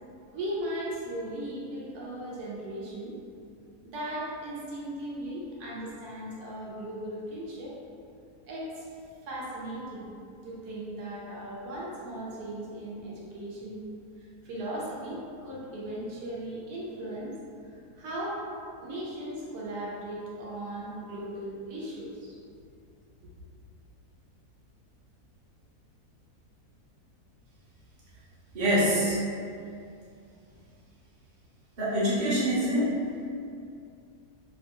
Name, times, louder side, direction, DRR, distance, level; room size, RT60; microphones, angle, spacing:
voice 1, 0.3-3.1 3.8-7.7 8.5-8.9 9.2-10.0 10.4-13.8 14.2-17.3 17.6-18.4 18.8-22.4, right 1 dB, 75° right, -6 dB, 1.1 m, -37 dB
voice 2, 28.5-29.2 31.8-33.0, equal, 40° right, -10 dB, 0.7 m, -25 dB
3.2 x 2.1 x 2.8 m, 2.5 s
omnidirectional pair, 1.7 m